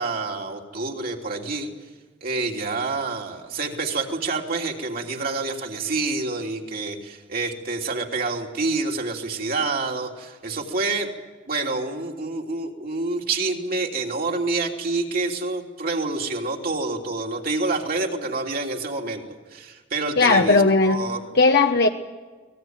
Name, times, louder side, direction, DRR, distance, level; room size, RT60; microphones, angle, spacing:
voice 1, 0.0-1.7 2.2-11.1 11.5-19.2 19.5-21.2, right 3 dB, 55° right, 1 dB, 3.2 m, -27 dB
voice 2, 20.2-21.0 21.3-21.9, left 3 dB, 60° left, 4 dB, 1.0 m, -17 dB
24.0 x 19.0 x 9.3 m, 1.4 s
head